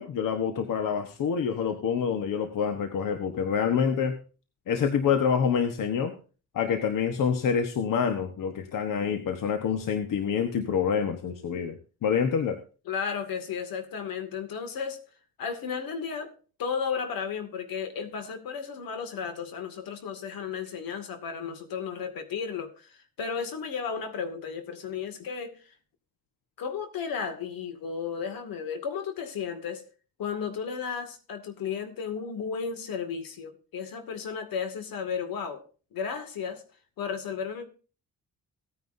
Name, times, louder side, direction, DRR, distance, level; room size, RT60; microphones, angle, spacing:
voice 1, 0.0-4.2 4.7-6.1 6.5-12.6, left 7 dB, 70° left, 1.3 m, -27 dB
voice 2, 12.9-15.0 15.4-16.3 16.6-25.7 26.6-29.8 30.2-35.6 35.9-36.6 37.0-37.7, left 6 dB, 85° left, 2.3 m, -34 dB
17.0 x 9.6 x 2.7 m
cardioid pair, 130°, 34 cm